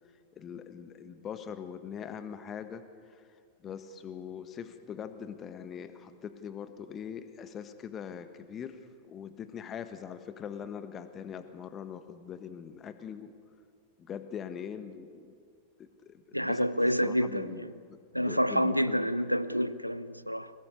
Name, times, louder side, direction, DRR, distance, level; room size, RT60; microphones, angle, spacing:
voice 1, 0.4-2.9 3.6-8.8 9.1-13.3 14.0-15.4 15.8-16.7 17.0-19.1, left 8 dB, 25° left, 1.4 m, -42 dB
voice 2, 16.3-17.7 18.1-20.5, equal, 90° right, 0.6 m, -28 dB
22.0 x 19.0 x 8.3 m
figure-of-eight pair, 90°, 0 cm